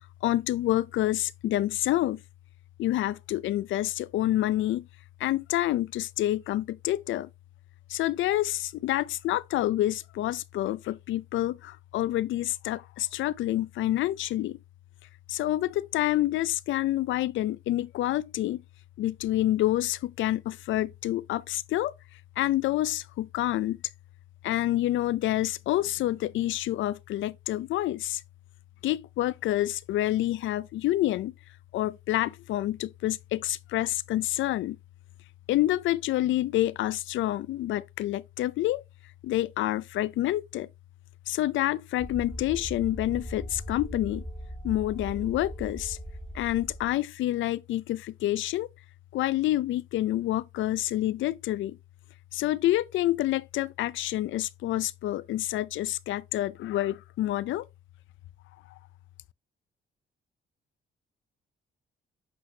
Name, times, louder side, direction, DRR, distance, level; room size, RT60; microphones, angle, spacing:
voice 1, 0.2-2.2 2.8-4.9 5.2-7.3 7.9-14.6 15.3-18.6 19.0-21.9 22.4-23.8 24.4-28.2 28.8-31.3 31.7-34.8 35.5-38.8 39.2-40.7 41.3-44.2 44.6-46.0 46.3-48.7 49.1-51.8 52.3-57.7, left 14 dB, 75° left, 0.5 m, -28 dB
sound 1, 42.0-47.0, equal, ahead, 1.3 m, -39 dB
7.9 x 4.2 x 2.8 m
cardioid pair, 90°, 20 cm